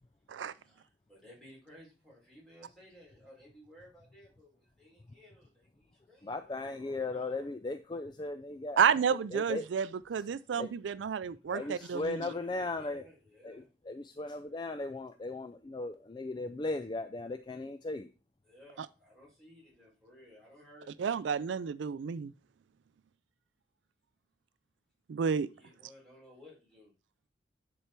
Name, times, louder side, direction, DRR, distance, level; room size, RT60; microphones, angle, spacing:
voice 1, 0.5-7.5 9.5-9.7 11.4-13.7 18.4-21.0 25.5-27.0, equal, 5° left, 4.3 m, -57 dB
voice 2, 6.2-8.8 9.3-9.7 10.6-10.7 11.5-13.0 13.4-18.1, left 2 dB, 25° left, 0.4 m, -37 dB
voice 3, 8.8-12.2 21.0-22.3 25.1-25.5, right 7 dB, 85° right, 0.4 m, -30 dB
10.0 x 4.4 x 4.4 m
head